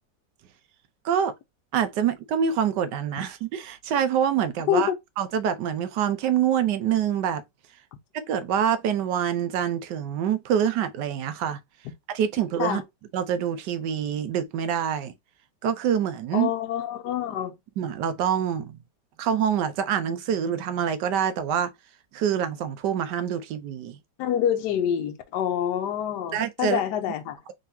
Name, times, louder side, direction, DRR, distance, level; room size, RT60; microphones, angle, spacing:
voice 1, 1.7-4.9 5.2-7.4 8.1-11.6 12.1-12.8 13.1-15.1 15.6-16.5 17.8-18.8 19.2-21.7 22.1-24.0 26.3-26.8, right 8 dB, 80° right, 1.3 m, -25 dB
voice 2, 16.3-17.5 24.2-27.4, left 9 dB, 75° left, 1.2 m, -26 dB
3.9 x 3.6 x 2.7 m
omnidirectional pair, 1.8 m